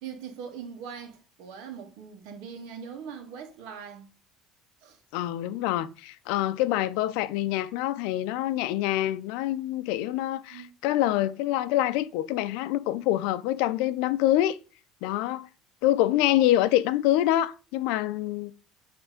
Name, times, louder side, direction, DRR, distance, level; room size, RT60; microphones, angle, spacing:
voice 1, 0.0-4.1 4.8-5.0 10.5-10.7, right 7 dB, 70° right, 1.8 m, -41 dB
voice 2, 5.1-14.6 15.0-15.5 15.8-18.5, left 14 dB, 80° left, 0.5 m, -26 dB
8.9 x 3.4 x 5.0 m
cardioid pair, 175°, 0 cm